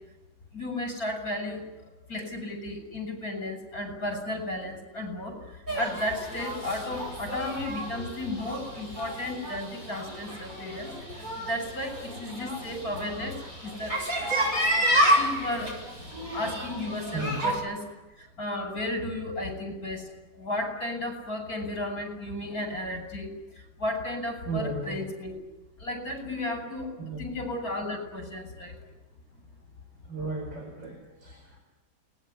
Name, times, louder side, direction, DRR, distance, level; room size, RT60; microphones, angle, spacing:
voice 1, 0.5-1.6 2.1-14.0 14.9-15.8 16.2-17.8 18.2-25.4 25.8-26.9 27.2-28.8, left 1 dB, 50° left, 5 dB, 7.8 m, -34 dB
sound 1, 5.7-17.5, equal, 45° right, 8.6 m, -30 dB
voice 2, 24.5-25.0 27.0-27.2 30.1-31.6, right 3 dB, 75° right, 2 dB, 5.3 m, -34 dB
29.0 x 21.0 x 9.9 m, 1.1 s
omnidirectional pair, 2.0 m